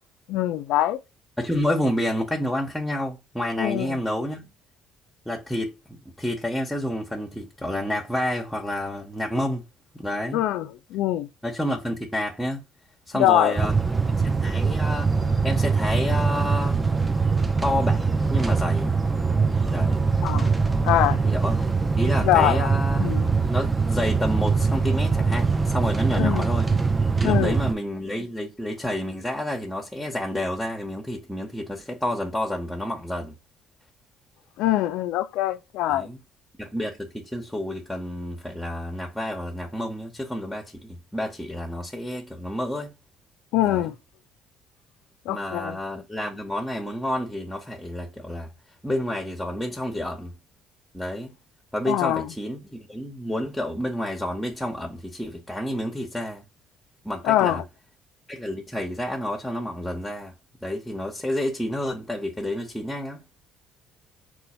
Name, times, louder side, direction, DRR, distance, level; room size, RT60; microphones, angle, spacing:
voice 1, 0.3-1.0 3.6-4.0 10.3-11.3 13.1-13.5 20.2-20.6 20.8-21.2 22.2-22.7 23.0-23.3 26.2-26.5 27.2-27.6 34.6-36.1 43.5-43.9 45.3-45.8 51.9-52.3 57.2-57.6, left 13 dB, 70° left, 0.3 m, -23 dB
voice 2, 1.4-4.4 5.3-9.6 9.9-10.4 11.4-12.6 13.1-13.7 14.2-15.1 15.4-16.8 17.6-18.9 19.7-20.0 21.2-21.7 22.0-23.0 23.5-26.7 27.2-33.3 35.9-36.2 36.6-42.9 43.6-43.9 45.3-48.5 48.8-50.3 50.9-51.3 51.7-56.4 57.0-57.6 58.3-60.3 60.6-63.2, left 1 dB, 5° left, 0.9 m, -29 dB
sound 1, 13.6-27.7, right 4 dB, 25° right, 0.5 m, -23 dB
3.8 x 2.4 x 4.2 m
hypercardioid pair, 55°, 0 cm